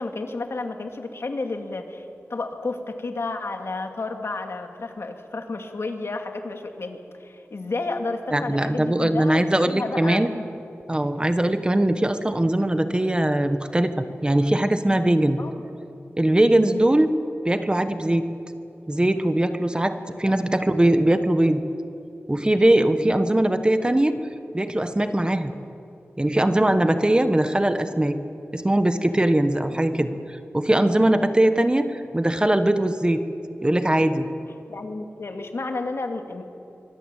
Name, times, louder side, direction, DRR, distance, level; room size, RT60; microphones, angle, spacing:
voice 1, 0.0-2.0 2.3-10.2 15.4-15.5 20.0-20.3 29.6-30.2 34.7-36.4, left 3 dB, 70° left, 4 dB, 2.5 m, -31 dB
voice 2, 8.3-10.3 10.9-15.4 16.2-17.1 17.4-18.3 18.9-21.6 22.3-24.1 24.5-25.5 26.2-28.2 28.5-33.2 33.6-34.3, right 1 dB, 20° right, 9 dB, 1.3 m, -21 dB
25.0 x 20.0 x 9.1 m, 2.9 s
wide cardioid pair, 85°, 5 cm